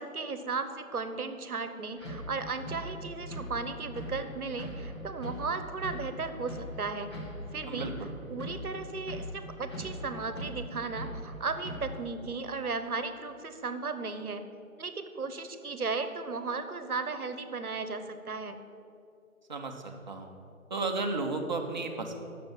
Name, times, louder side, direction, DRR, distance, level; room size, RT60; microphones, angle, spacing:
voice 1, 0.0-7.1 7.5-7.9 8.3-14.4 14.8-18.6, right 4 dB, 80° right, 9 dB, 1.1 m, -35 dB
sound 1, 2.0-12.0, equal, 20° left, 0.9 m, -41 dB
voice 2, 7.6-8.1 19.5-20.3 20.7-22.1, right 3 dB, 30° right, 2 dB, 0.9 m, -34 dB
9.0 x 6.8 x 7.2 m, 2.6 s
figure-of-eight pair, 155°, 43 cm